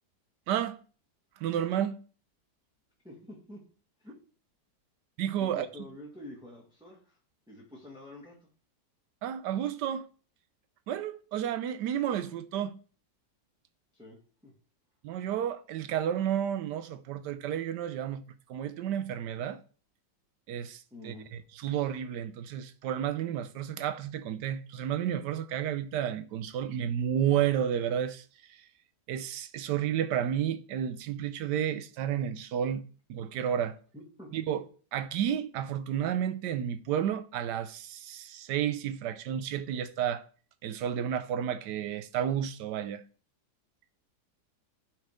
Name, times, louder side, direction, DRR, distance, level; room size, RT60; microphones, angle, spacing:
voice 1, 0.5-0.8 1.4-2.0 5.2-5.7 9.2-10.1 10.9-12.8 15.0-18.2 18.5-19.6 20.5-21.1 21.6-28.2 29.1-32.8 33.1-33.8 34.3-34.6 34.9-40.2 40.6-43.0, right 10 dB, 80° right, 1.2 m, -31 dB
voice 2, 3.0-3.6 4.0-4.2 5.4-7.2 7.5-8.5 13.9-14.2 14.4-14.5 20.9-21.3 33.9-34.3, left 1 dB, 5° right, 1.9 m, -47 dB
11.5 x 4.5 x 5.0 m
omnidirectional pair, 1.8 m